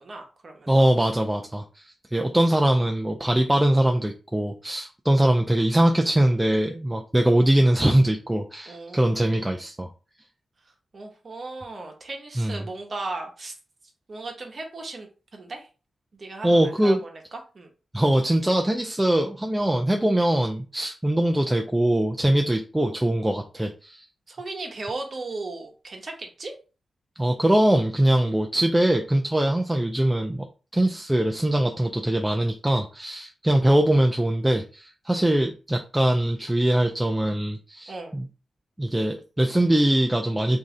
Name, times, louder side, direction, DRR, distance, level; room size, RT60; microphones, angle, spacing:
voice 1, 0.0-0.9 8.7-9.3 10.9-13.5 14.1-15.1 15.3-15.7 16.1-17.7 24.3-26.5 37.9-38.1, right 2 dB, 40° right, 3 dB, 0.9 m, -36 dB
voice 2, 0.7-9.9 12.4-12.6 16.4-17.0 17.9-24.0 27.2-30.5 30.7-38.3 38.8-40.6, right 1 dB, 10° right, 3 dB, 0.3 m, -22 dB
3.1 x 2.6 x 3.7 m, 0.34 s
wide cardioid pair, 155°, 0 cm